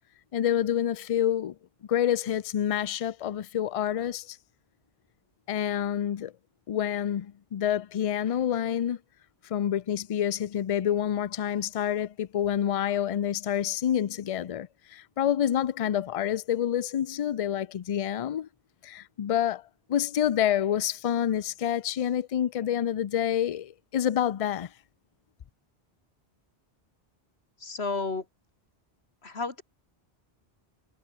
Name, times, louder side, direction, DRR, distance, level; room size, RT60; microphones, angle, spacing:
voice 1, 0.3-1.5 1.9-4.4 5.5-6.3 6.7-9.0 9.4-18.5 18.8-19.6 19.9-24.7, left 10 dB, 50° left, 0.4 m, -28 dB
voice 2, 27.6-28.3 29.2-29.6, left 3 dB, 75° left, 2.8 m, -32 dB
omnidirectional pair, 1.1 m